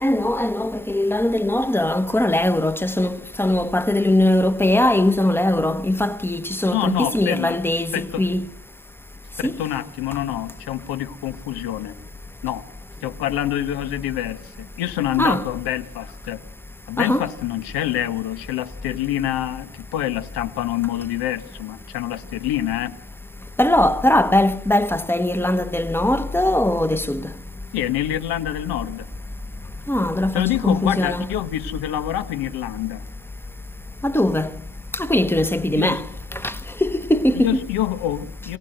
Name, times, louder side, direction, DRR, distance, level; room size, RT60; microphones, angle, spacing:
voice 1, 0.0-8.5 9.4-9.6 15.2-15.5 17.0-17.3 23.6-27.3 29.9-31.3 34.0-34.5 34.9-36.0 36.3-36.6 36.8-37.6, left 1 dB, 5° left, 1.1 m, -20 dB
voice 2, 6.6-7.6 7.9-8.2 9.4-12.0 12.4-12.7 13.0-16.4 16.9-23.0 27.7-29.1 30.3-33.1 35.7-36.0 37.4-38.6, left 13 dB, 80° left, 1.5 m, -26 dB
23.5 x 16.5 x 7.9 m
cardioid pair, 110°, 37 cm